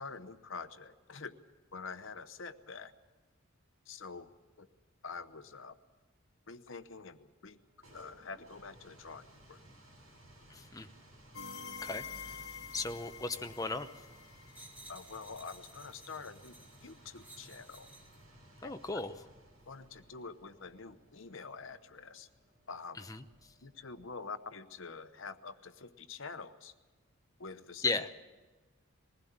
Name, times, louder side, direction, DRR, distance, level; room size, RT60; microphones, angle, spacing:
voice 1, 0.0-1.3 1.7-2.9 3.9-4.3 4.6-4.7 5.0-5.8 6.5-7.6 7.9-9.6 14.9-17.9 18.6-18.7 19.7-22.3 22.7-23.0 23.6-26.7 27.4-27.9, left 4 dB, 65° left, 10 dB, 0.9 m, -46 dB
sound 1, 7.5-24.2, right 1 dB, 75° right, 7.3 m, -59 dB
voice 2, 10.5-10.9 11.8-12.0 12.7-13.9 18.6-19.1 23.0-23.2 27.8-28.1, left 3 dB, 15° left, 7 dB, 0.7 m, -35 dB
sound 2, 11.3-15.1, left 6 dB, 90° left, 1.0 m, -46 dB
sound 3, 14.5-18.2 18.9-19.1, right 1 dB, 10° right, 2.3 m, -56 dB
20.5 x 15.5 x 8.8 m, 1.3 s
head